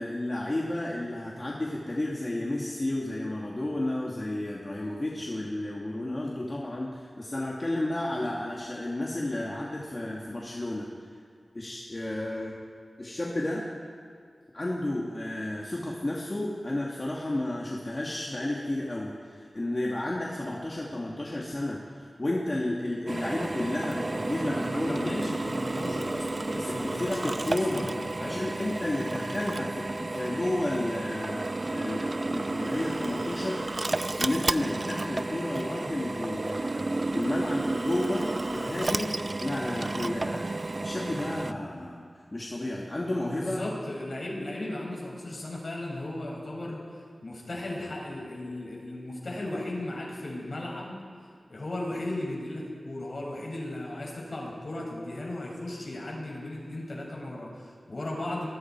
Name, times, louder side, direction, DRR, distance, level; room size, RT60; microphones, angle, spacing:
voice 1, 0.0-10.9 11.5-12.5 13.0-13.7 14.5-25.3 26.6-27.9 28.2-33.6 34.2-42.0 42.3-43.6, left 1 dB, 35° left, -4 dB, 2.6 m, -32 dB
Drill, 23.1-41.5, right 2 dB, 40° right, 0.6 m, -32 dB
voice 2, 24.4-28.5 43.2-46.8 47.2-51.0 51.5-58.5, left 1 dB, 60° left, -2 dB, 6.9 m, -36 dB
29.5 x 22.0 x 4.9 m, 2.1 s
wide cardioid pair, 75°, 0 cm